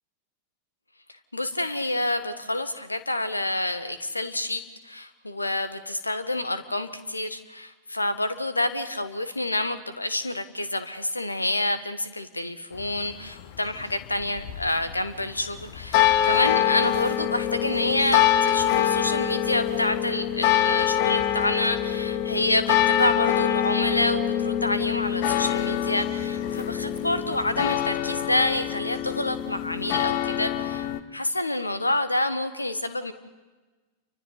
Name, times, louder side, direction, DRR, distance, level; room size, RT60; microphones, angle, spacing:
voice 1, 1.3-33.1, left 2 dB, 85° left, 12 dB, 1.4 m, -28 dB
sound 1, 12.7-31.0, left 11 dB, 50° left, 1.1 m, -25 dB
29.0 x 24.5 x 4.0 m, 1.3 s
figure-of-eight pair, 90°, 0 cm